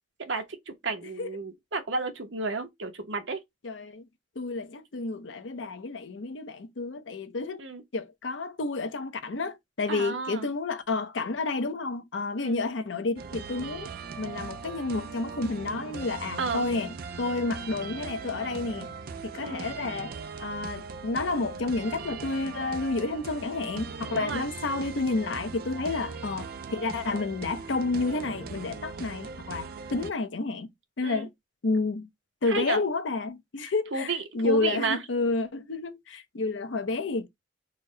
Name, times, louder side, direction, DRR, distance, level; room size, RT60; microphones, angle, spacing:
voice 1, 0.2-3.4 7.6-7.8 9.9-10.5 12.4-12.6 16.4-16.7 19.3-19.7 24.2-24.5 31.0-31.3 32.5-32.8 33.6-35.0, right 3 dB, 85° right, 0.9 m, -32 dB
voice 2, 3.6-4.0 4.4-7.6 7.9-13.9 14.2-18.9 19.2-20.1 20.4-30.7 31.0-31.3 31.6-32.1 32.4-37.3, left 3 dB, 90° left, 0.7 m, -30 dB
sound 1, 13.2-30.1, right 5 dB, 55° right, 0.4 m, -40 dB
4.0 x 2.1 x 3.7 m
head